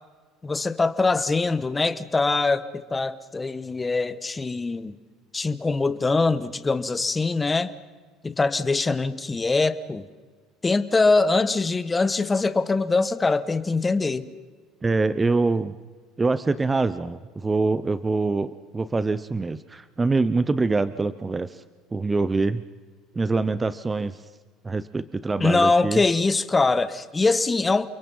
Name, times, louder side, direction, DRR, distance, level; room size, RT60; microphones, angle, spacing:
voice 1, 0.4-4.9 5.3-7.7 8.2-10.0 10.6-14.3 25.4-27.9, left 3 dB, 20° left, 14 dB, 1.3 m, -23 dB
voice 2, 14.8-15.8 16.2-21.6 21.9-22.6 23.1-24.2 24.6-26.0, right 3 dB, 20° right, 15 dB, 0.7 m, -24 dB
29.5 x 22.0 x 5.6 m, 1.5 s
supercardioid pair, 90°, 0 cm